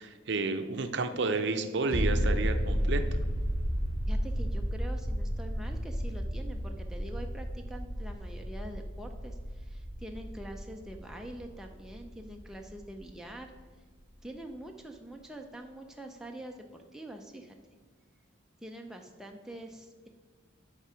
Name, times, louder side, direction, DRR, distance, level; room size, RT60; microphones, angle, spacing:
voice 1, 0.0-3.3, right 3 dB, 60° right, 8 dB, 0.5 m, -31 dB
sound 1, 1.9-13.2 13.5-13.6, equal, 90° left, 2.1 m, -33 dB
voice 2, 4.0-13.5 14.2-16.6 16.9-17.6 18.6-20.1, right 1 dB, 5° right, 2 dB, 0.4 m, -45 dB
9.3 x 3.7 x 5.6 m, 1.5 s
head